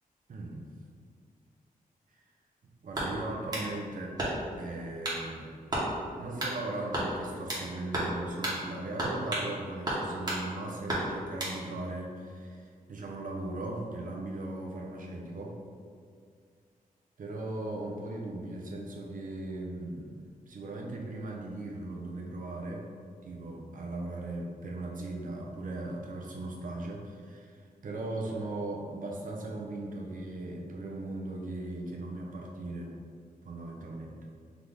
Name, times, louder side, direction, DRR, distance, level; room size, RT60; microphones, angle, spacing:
voice 1, 0.3-0.7 2.8-4.2 4.6-5.6 6.2-15.6 17.2-22.9 23.2-32.9 33.4-34.2, right 2 dB, 65° right, 0 dB, 0.7 m, -38 dB
sound 1, 2.9-3.7 4.2-4.6 5.0-5.2 5.7-5.9 6.4-6.6 6.9-7.7 7.9-8.2 8.4-8.6 9.0-9.5 9.9-10.4 10.9-11.6, right 1 dB, 25° right, 1.2 m, -32 dB
3.6 x 3.2 x 3.9 m, 2.2 s
wide cardioid pair, 130°, 15 cm